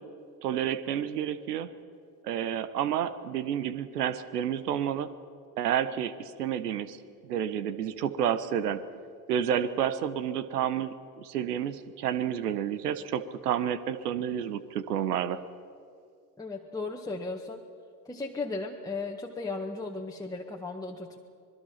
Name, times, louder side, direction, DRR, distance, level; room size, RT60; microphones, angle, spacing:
voice 1, 0.4-1.7 2.2-5.1 5.6-7.0 7.2-8.8 9.3-15.4, right 9 dB, 75° right, 13 dB, 1.3 m, -30 dB
voice 2, 16.4-17.6 18.0-21.2, left 3 dB, 10° left, -1 dB, 1.7 m, -36 dB
25.5 x 21.0 x 5.9 m, 2.2 s
hypercardioid pair, 75°, 48 cm